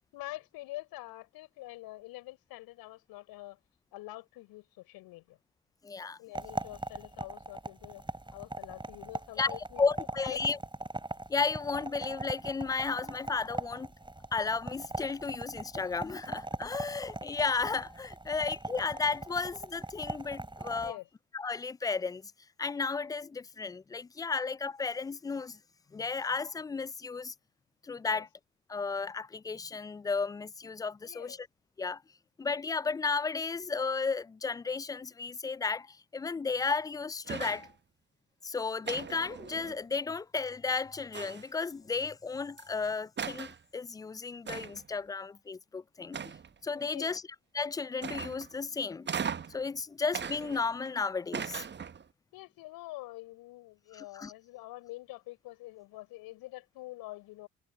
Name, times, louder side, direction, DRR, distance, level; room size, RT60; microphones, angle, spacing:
voice 1, 0.1-3.6 3.9-5.4 6.2-8.0 8.3-9.8 10.2-10.6 20.8-21.1 28.1-28.2 31.0-31.4 46.8-47.2 52.3-57.5, left 18 dB, 65° left, 4.0 m, -46 dB
voice 2, 5.8-6.2 9.4-9.5 9.8-10.6 11.3-13.9 14.3-21.0 21.3-22.3 22.6-25.6 25.9-27.3 27.8-28.3 28.7-31.5 31.8-32.0 32.4-37.7 38.4-46.3 46.6-47.2 47.5-49.1 49.5-51.6 53.9-54.3, left 4 dB, 10° left, 0.3 m, -33 dB
sound 1, 6.3-20.9, right 2 dB, 10° right, 3.2 m, -41 dB
sound 2, 37.3-37.7 38.8-40.0 41.1-41.6 42.6-42.7 43.2-43.6 44.5-44.9 46.1-46.7 48.0-48.6 49.1-49.6 50.1-50.9 51.3-52.1, right 7 dB, 30° right, 1.1 m, -38 dB
figure-of-eight pair, 45°, 39 cm